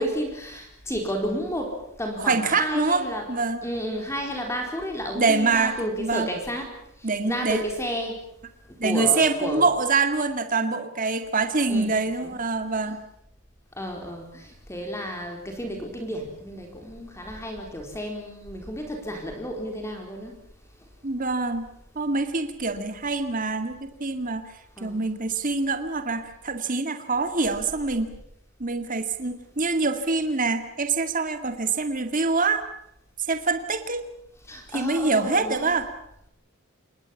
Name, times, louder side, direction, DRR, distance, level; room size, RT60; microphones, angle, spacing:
voice 1, 0.0-3.3 3.6-8.2 8.8-9.7 11.7-11.9 12.2-12.4 13.8-20.3 22.8-23.0 24.8-25.0 34.4-35.7, equal, 15° left, 3 dB, 4.3 m, -32 dB
voice 2, 2.3-3.6 5.2-6.3 7.0-7.6 8.8-13.0 21.0-21.7 22.0-24.5 24.8-28.1 28.6-32.6 33.3-34.0 34.7-35.9, right 3 dB, 40° right, 7 dB, 2.2 m, -25 dB
27.0 x 21.0 x 7.3 m, 0.75 s
head